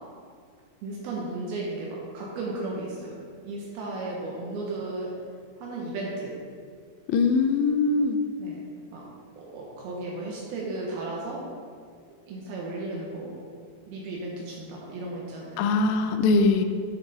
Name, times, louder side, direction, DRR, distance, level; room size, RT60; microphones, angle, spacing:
voice 1, 0.8-3.2 3.4-5.1 5.6-6.4 8.4-8.6 8.9-9.1 9.4-11.5 12.3-13.4 13.9-15.8, right 2 dB, 75° right, -3 dB, 2.6 m, -35 dB
voice 2, 7.1-8.2 15.6-16.7, left 4 dB, 85° left, 7 dB, 2.8 m, -22 dB
8.8 x 6.2 x 4.0 m, 2.1 s
omnidirectional pair, 5.0 m